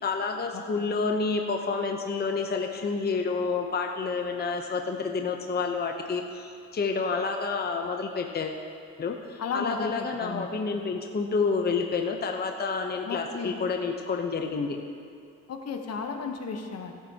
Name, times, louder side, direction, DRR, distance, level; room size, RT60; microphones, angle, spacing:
voice 1, 0.0-8.6 9.0-14.8, left 4 dB, 35° left, 3 dB, 0.8 m, -29 dB
voice 2, 0.5-0.8 9.4-10.5 13.1-13.6 15.5-17.0, left 5 dB, 55° left, 5 dB, 1.1 m, -34 dB
17.5 x 9.2 x 2.9 m, 2.4 s
cardioid pair, 90°, 30 cm